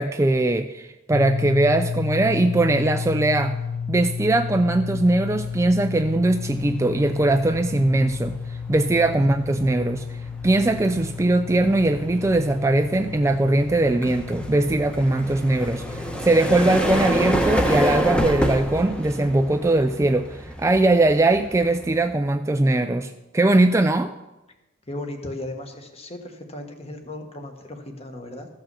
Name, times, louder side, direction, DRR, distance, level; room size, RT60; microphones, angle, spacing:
voice 1, 0.0-3.6 3.9-10.2 10.4-24.1, right 2 dB, 15° right, 8 dB, 0.3 m, -21 dB
sound 1, 1.1-18.9, left 6 dB, 80° left, 0.4 m, -33 dB
sound 2, 4.7-5.0 5.4-22.1, equal, 5° left, 0.9 m, -29 dB
voice 2, 24.9-28.5, left 1 dB, 30° left, 5 dB, 1.4 m, -36 dB
14.0 x 5.9 x 6.9 m, 1.0 s
head